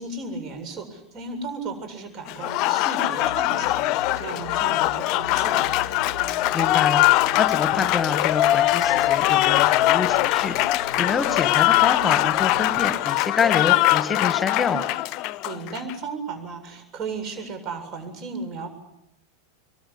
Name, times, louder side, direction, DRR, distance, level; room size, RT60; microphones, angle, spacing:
voice 1, 0.0-5.7 15.4-18.7, right 3 dB, 35° right, 8 dB, 7.8 m, -35 dB
Applause, 2.3-15.9, left 16 dB, 40° left, 0.9 m, -22 dB
sound 1, 3.2-12.8, right 1 dB, 80° right, 6.0 m, -42 dB
voice 2, 6.5-14.8, left 5 dB, 20° left, 9 dB, 2.0 m, -27 dB
26.0 x 23.0 x 8.5 m, 0.83 s
figure-of-eight pair, 90°, 0 cm